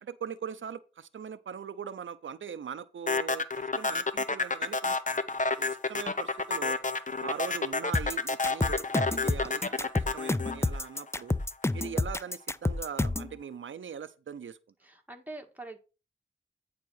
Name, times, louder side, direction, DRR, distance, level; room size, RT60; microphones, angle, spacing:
voice 1, 0.0-5.0 5.6-6.8 7.2-11.3 11.7-14.6, right 7 dB, 90° right, 0.6 m, -41 dB
sound 1, 3.1-11.4, left 3 dB, 40° left, 0.9 m, -30 dB
sound 2, 7.9-13.3, left 2 dB, 15° left, 0.5 m, -29 dB
voice 2, 14.8-15.8, right 2 dB, 10° right, 1.7 m, -44 dB
9.4 x 3.7 x 6.4 m
wide cardioid pair, 60°, 19 cm